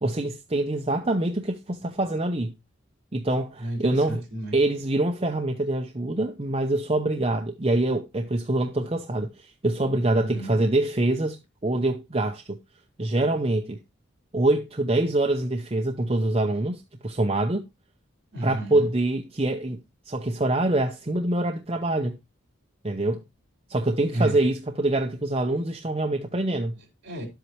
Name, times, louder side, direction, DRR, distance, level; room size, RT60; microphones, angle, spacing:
voice 1, 0.0-2.5 3.1-4.2 4.5-11.4 11.6-12.6 13.0-13.8 14.3-17.6 18.4-19.8 20.1-22.2 22.8-23.2 23.7-26.8, right 2 dB, 30° right, 0.7 m, -25 dB
voice 2, 3.6-4.6 10.2-10.6 18.3-18.9 24.1-24.3 26.7-27.2, right 1 dB, 55° right, 4.4 m, -31 dB
11.0 x 8.1 x 3.1 m
head